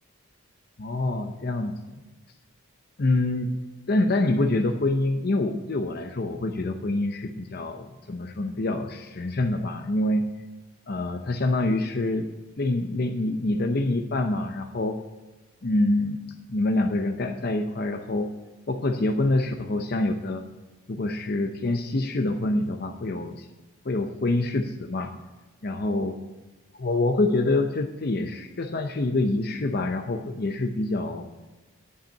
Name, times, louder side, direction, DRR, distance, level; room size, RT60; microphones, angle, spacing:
voice 1, 0.8-2.0 3.0-3.5 3.9-10.2 10.9-12.3 12.6-15.0 15.6-16.2 16.5-18.3 18.7-20.4 20.9-23.5 23.8-25.1 25.6-26.1 26.7-31.3, left 2 dB, 45° left, 6 dB, 0.6 m, -26 dB
10.5 x 5.7 x 8.4 m, 1.2 s
head